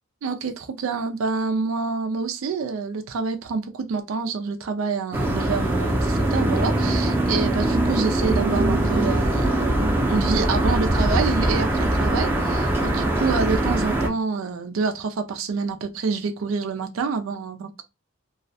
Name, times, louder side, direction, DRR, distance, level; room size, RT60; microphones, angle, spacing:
voice 1, 0.2-17.8, right 4 dB, 90° right, 0.4 m, -27 dB
sound 1, 5.1-14.1, right 1 dB, 10° right, 0.5 m, -22 dB
2.3 x 2.1 x 2.6 m
head